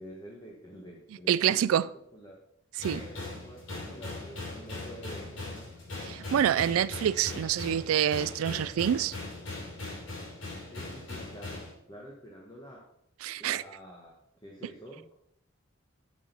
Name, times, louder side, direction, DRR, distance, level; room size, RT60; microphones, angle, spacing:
voice 1, 0.0-1.8 2.1-2.4 2.8-5.5 10.7-12.9 13.4-15.2, equal, 20° left, 1.2 m, -47 dB
voice 2, 1.3-1.8 2.8-3.0 6.0-9.1 13.2-13.6, right 10 dB, 80° right, 0.3 m, -26 dB
sound 1, 2.8-11.7, left 2 dB, 60° left, 3.3 m, -40 dB
8.5 x 6.3 x 5.3 m
head